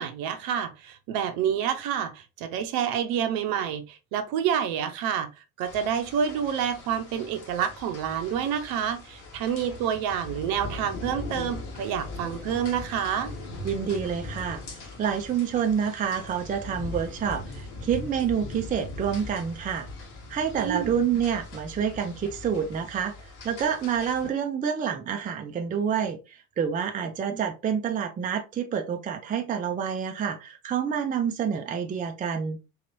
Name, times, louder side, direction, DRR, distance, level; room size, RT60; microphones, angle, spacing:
voice 1, 0.0-5.3 5.6-13.3 20.6-20.9 27.3-27.4, right 8 dB, 55° right, 0.8 m, -28 dB
sound 1, 5.6-24.3, left 2 dB, 55° left, 1.4 m, -40 dB
voice 2, 13.6-19.9 20.3-23.1 23.4-32.6, right 7 dB, 20° right, 0.5 m, -28 dB
3.9 x 3.0 x 2.7 m
figure-of-eight pair, 60°, 45 cm